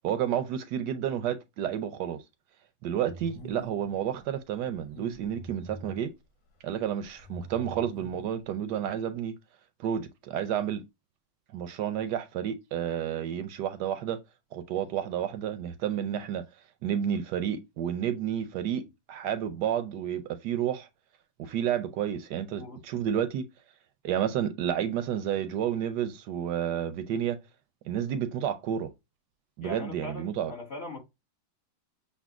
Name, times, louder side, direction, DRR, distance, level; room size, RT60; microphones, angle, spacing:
voice 1, 0.0-2.2 2.8-6.1 6.6-9.3 9.8-10.8 11.5-14.2 14.5-16.4 16.8-20.9 21.4-23.5 24.0-27.4 27.9-28.9 29.6-30.5, right 9 dB, 75° right, 1.0 m, -30 dB
sound 1, 3.1-4.0 4.7-6.1 7.0-8.4, right 1 dB, 85° left, 1.9 m, -45 dB
voice 2, 29.6-31.0, left 2 dB, 40° left, 1.2 m, -40 dB
6.8 x 2.3 x 2.3 m
omnidirectional pair, 2.1 m